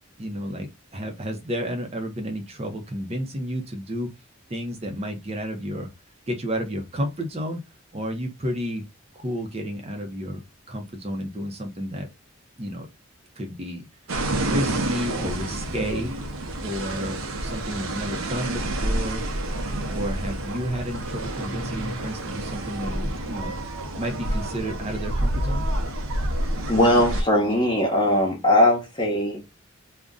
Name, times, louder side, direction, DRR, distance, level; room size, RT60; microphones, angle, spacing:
voice 1, 0.2-4.1 4.5-5.9 6.3-7.6 7.9-8.9 9.1-10.4 10.7-12.1 12.6-12.9 13.4-13.9 14.4-16.1 16.6-19.2 19.9-23.5 24.0-25.6, equal, 30° right, 0.6 m, -31 dB
sound 1, 14.1-27.2, right 1 dB, 75° right, 0.6 m, -28 dB
voice 2, 26.7-29.5, left 1 dB, 25° left, 0.9 m, -20 dB
2.5 x 2.1 x 3.5 m
head